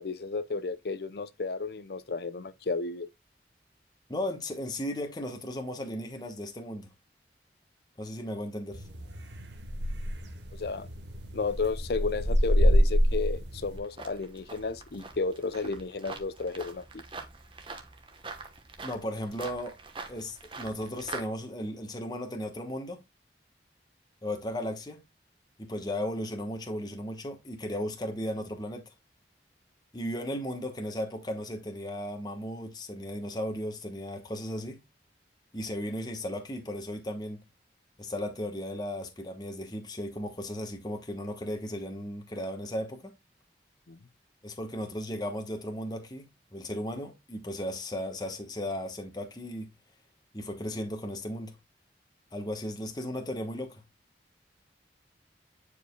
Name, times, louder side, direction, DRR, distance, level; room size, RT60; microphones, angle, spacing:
voice 1, 0.0-3.1 10.5-10.9 11.3-17.0 43.9-44.0, left 4 dB, 60° left, 0.5 m, -33 dB
voice 2, 4.1-6.9 8.0-8.9 18.8-19.7 20.1-23.0 24.2-25.0 25.6-28.9 29.9-34.8 35.5-37.4 38.0-43.1 44.4-49.7 50.3-51.6 52.3-53.8, left 1 dB, 25° left, 1.1 m, -35 dB
sound 1, 8.7-13.8, equal, 80° right, 1.2 m, -27 dB
sound 2, 13.8-21.2, right 3 dB, 30° right, 1.0 m, -44 dB
9.3 x 4.9 x 2.2 m
head